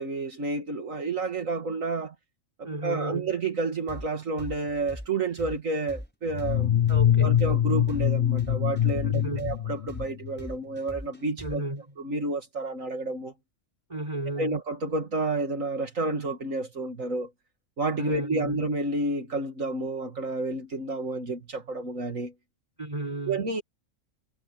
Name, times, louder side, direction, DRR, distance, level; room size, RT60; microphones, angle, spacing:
voice 1, 0.0-2.1 2.8-6.8 7.2-11.6 12.0-13.3 14.4-17.3 17.8-22.3 23.3-23.6, right 2 dB, 75° right, 2.6 m, -30 dB
voice 2, 2.6-3.3 6.9-7.3 9.0-9.6 11.4-11.9 13.9-14.6 18.0-18.6 22.8-23.4, right 1 dB, 25° right, 5.3 m, -33 dB
sound 1, 3.9-11.8, equal, 5° left, 5.3 m, -42 dB
sound 2, 6.3-10.4, left 10 dB, 50° left, 0.7 m, -24 dB
omnidirectional pair, 1.4 m